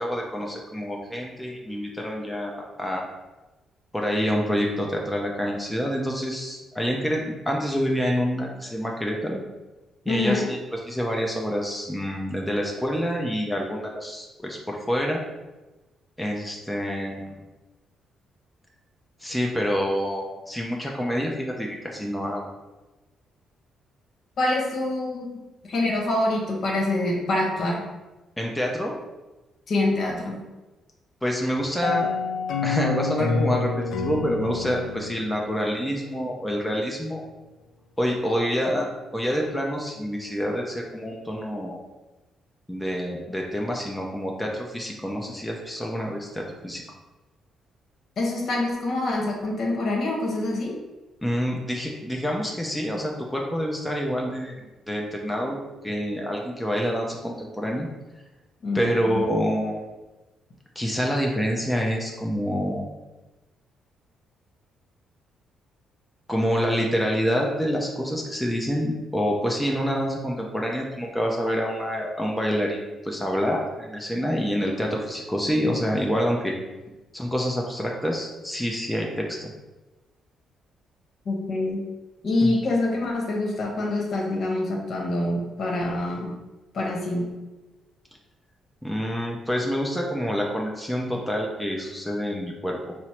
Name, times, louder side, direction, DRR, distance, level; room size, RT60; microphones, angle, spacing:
voice 1, 0.0-3.1 3.9-9.4 10.1-15.2 16.2-17.2 19.2-22.5 28.4-28.9 31.2-32.1 32.6-33.7 34.0-37.2 38.0-41.8 42.7-46.8 51.2-57.9 58.7-59.8 60.8-62.9 66.3-76.5 77.1-79.5 82.4-82.5 88.8-92.9, equal, 5° left, -1 dB, 0.6 m, -27 dB
voice 2, 10.1-10.5 24.4-25.4 25.6-27.8 29.7-30.5 48.2-50.8 58.6-59.2 81.2-81.9 82.2-86.3 86.7-87.3, left 2 dB, 60° left, -1 dB, 1.0 m, -25 dB
sound 1, 31.8-36.5, left 4 dB, 75° left, 0.4 m, -28 dB
4.4 x 2.0 x 4.3 m, 1.1 s
cardioid pair, 90°, 0 cm